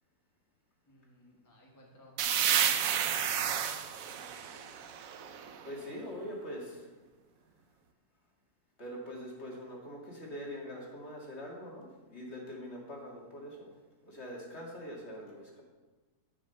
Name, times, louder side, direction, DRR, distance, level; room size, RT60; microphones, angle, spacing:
voice 1, 0.9-4.7, equal, 10° left, -2 dB, 1.2 m, -60 dB
sound 1, 2.2-5.8, right 9 dB, 65° right, 1.0 m, -31 dB
voice 2, 5.6-6.9 8.8-13.7 14.0-15.6, equal, 40° left, -2 dB, 2.3 m, -43 dB
10.5 x 5.9 x 5.6 m, 1.2 s
omnidirectional pair, 1.7 m